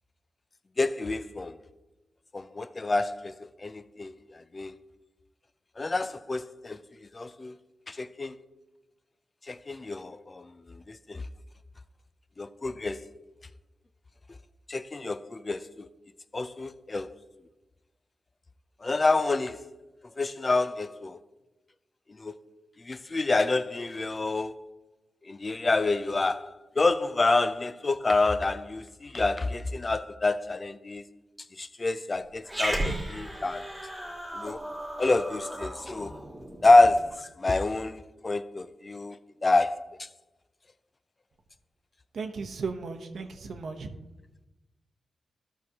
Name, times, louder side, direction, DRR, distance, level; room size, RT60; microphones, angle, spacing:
voice 1, 0.8-1.6 2.3-4.7 5.8-6.8 7.1-7.5 7.9-8.4 9.5-11.2 12.4-13.1 14.7-15.9 16.3-17.2 18.8-19.6 20.2-21.2 22.2-22.4 22.8-24.6 25.3-31.0 31.6-33.7 34.3-34.6 35.0-36.1 36.6-39.2 39.4-40.1, left 2 dB, 30° left, 0.4 m, -27 dB
Growling, 32.4-37.1, right 1 dB, 5° right, 1.6 m, -35 dB
voice 2, 42.1-43.9, right 4 dB, 70° right, 0.8 m, -35 dB
13.0 x 6.0 x 2.8 m
cardioid pair, 95°, 0 cm